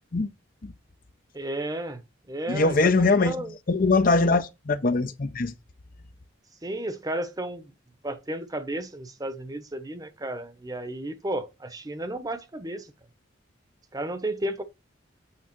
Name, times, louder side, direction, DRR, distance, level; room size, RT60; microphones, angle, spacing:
voice 1, 1.3-2.0 2.3-3.5 6.6-7.7 8.0-12.9 13.9-14.6, right 1 dB, 20° right, 0.9 m, -33 dB
voice 2, 2.5-3.3 3.7-5.5, left 3 dB, 45° left, 0.6 m, -22 dB
8.7 x 3.6 x 5.9 m
head